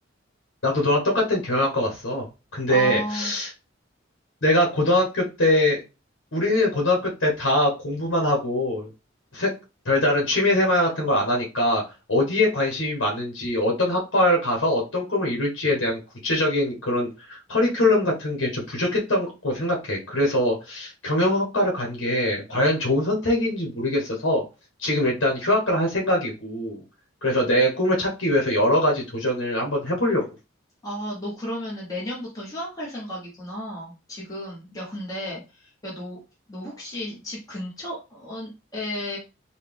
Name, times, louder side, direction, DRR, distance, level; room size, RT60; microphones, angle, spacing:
voice 1, 0.6-2.2 2.5-3.5 4.4-5.8 6.3-8.9 9.3-9.5 9.8-11.8 12.1-24.4 24.8-26.8 27.2-30.2, left 1 dB, 70° left, 0 dB, 1.1 m, -23 dB
voice 2, 2.7-3.3 30.8-36.2 36.5-39.2, equal, 20° left, -5 dB, 1.1 m, -33 dB
4.0 x 2.3 x 3.4 m, 0.28 s
head